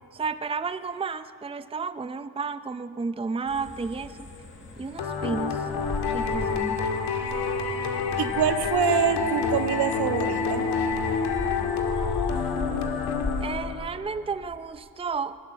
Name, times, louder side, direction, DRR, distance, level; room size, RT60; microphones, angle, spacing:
voice 1, 0.1-4.3 4.8-5.7 6.1-6.8 13.4-15.4, right 4 dB, 15° right, 12 dB, 0.6 m, -32 dB
sound 1, 3.5-13.6, left 3 dB, 30° left, 5.4 m, -38 dB
sound 2, 5.0-13.9, left 5 dB, 80° left, 2.2 m, -28 dB
voice 2, 8.2-10.7, right 7 dB, 75° right, 7 dB, 1.4 m, -25 dB
20.0 x 14.0 x 9.3 m, 2.8 s
cardioid pair, 75°, 39 cm